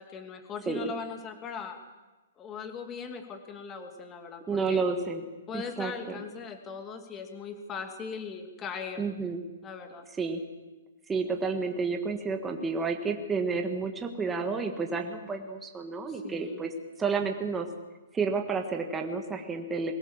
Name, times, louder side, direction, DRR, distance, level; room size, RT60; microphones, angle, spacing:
voice 1, 0.0-1.8 2.4-4.8 5.5-9.0 9.6-10.0 11.5-11.6 16.1-16.7, left 6 dB, 20° left, 5 dB, 2.6 m, -39 dB
voice 2, 4.5-5.2 5.5-6.2 9.0-9.4 10.2-10.4 11.1-16.7 17.0-17.7 18.1-19.9, right 4 dB, 10° right, 4 dB, 1.7 m, -30 dB
21.5 x 17.5 x 7.4 m, 1.2 s
hypercardioid pair, 160°, 0 cm